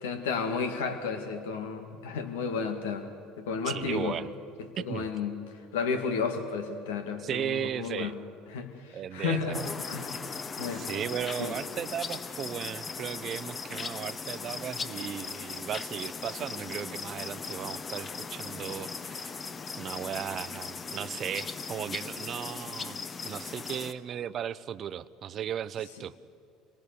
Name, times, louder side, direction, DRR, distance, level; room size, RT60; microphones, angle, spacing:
voice 1, 0.0-3.1 3.4-4.2 4.9-5.4 5.7-8.1 8.5-9.6 9.9-10.1 10.6-10.9 11.4-11.6, left 5 dB, 85° left, 5 dB, 2.2 m, -32 dB
voice 2, 3.6-4.3 4.8-5.1 7.2-8.1 8.9-9.7 10.7-19.3 19.8-26.1, right 9 dB, 45° right, 16 dB, 0.7 m, -36 dB
sound 1, 9.5-23.9, left 5 dB, 30° left, 1.1 m, -38 dB
27.0 x 19.5 x 6.9 m, 2.3 s
hypercardioid pair, 80°, 0 cm